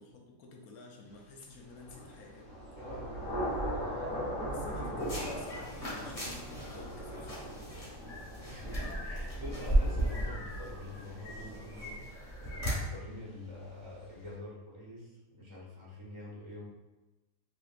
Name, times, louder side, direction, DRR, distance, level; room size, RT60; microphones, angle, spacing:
voice 1, 0.0-2.5 4.5-7.7, left 3 dB, 90° left, 0 dB, 1.1 m, -52 dB
Thunder / Rain, 1.7-13.3, equal, 65° left, 1.1 m, -40 dB
voice 2, 2.7-3.2 4.5-5.2 8.4-12.1 12.5-16.6, left 1 dB, 30° right, -6 dB, 0.6 m, -46 dB
sound 1, 5.0-12.7, right 1 dB, 35° left, 1.4 m, -35 dB
3.2 x 3.0 x 2.4 m, 1.1 s
omnidirectional pair, 1.5 m